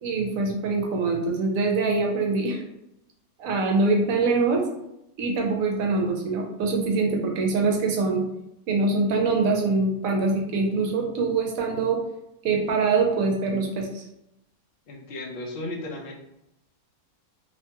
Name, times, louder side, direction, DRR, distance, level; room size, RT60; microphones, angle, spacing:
voice 1, 0.0-2.6 3.4-4.6 5.2-8.2 8.7-12.0 12.4-14.0, right 3 dB, 70° right, 1 dB, 1.0 m, -24 dB
voice 2, 14.9-16.1, left 2 dB, 60° left, 0 dB, 0.6 m, -35 dB
2.8 x 2.2 x 2.9 m, 0.83 s
omnidirectional pair, 1.5 m